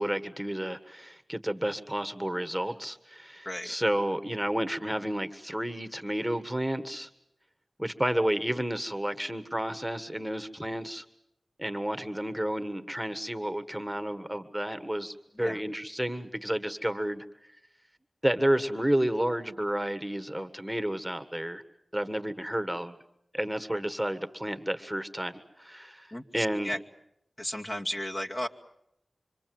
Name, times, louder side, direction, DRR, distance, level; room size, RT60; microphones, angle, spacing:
voice 1, 0.0-7.1 7.8-11.0 11.6-17.3 18.2-21.6 21.9-22.9 23.3-26.7, right 1 dB, ahead, 9 dB, 1.6 m, -31 dB
voice 2, 26.1-26.8 27.4-28.5, left 1 dB, 40° left, 1 dB, 2.4 m, -34 dB
26.5 x 25.0 x 7.8 m, 0.80 s
cardioid pair, 40°, 0 cm